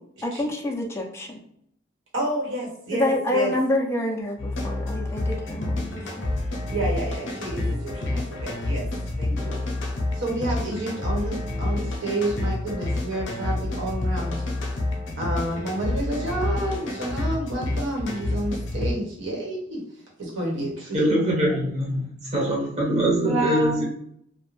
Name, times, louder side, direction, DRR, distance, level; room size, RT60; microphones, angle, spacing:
voice 1, 0.2-1.4 2.9-6.3, left 1 dB, 15° left, 0 dB, 0.3 m, -27 dB
voice 2, 2.1-3.5 6.7-8.9 9.2-9.6 10.2-14.4 15.2-19.8 20.2-21.0 23.2-23.8, right 1 dB, 70° right, -3 dB, 0.9 m, -29 dB
sound 1, 4.4-18.9, left 2 dB, 65° left, 0.6 m, -28 dB
voice 3, 20.9-23.8, right 1 dB, 35° right, -4 dB, 1.0 m, -23 dB
2.4 x 2.0 x 3.0 m, 0.70 s
head